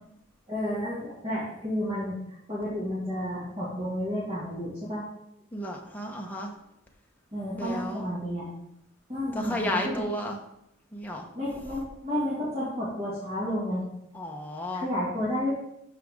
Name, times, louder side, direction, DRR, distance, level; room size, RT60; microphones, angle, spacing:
voice 1, 0.5-5.0 7.3-8.5 9.1-9.8 11.3-13.9 14.7-15.5, equal, 30° right, -9 dB, 2.2 m, -31 dB
voice 2, 5.5-6.5 7.5-8.1 9.3-10.4 10.9-11.3 14.1-14.9, left 1 dB, 10° left, 0 dB, 1.0 m, -33 dB
12.5 x 4.8 x 3.7 m, 0.80 s
head